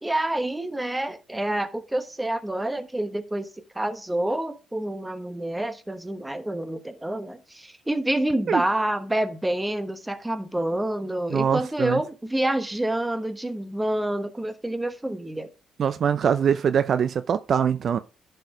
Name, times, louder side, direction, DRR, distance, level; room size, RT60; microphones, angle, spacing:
voice 1, 0.0-3.5 3.7-15.5, right 1 dB, 10° right, 1.1 m, -27 dB
voice 2, 11.3-12.0 15.8-18.0, right 7 dB, 55° right, 0.5 m, -23 dB
11.0 x 4.7 x 4.9 m
cardioid pair, 90°, 0 cm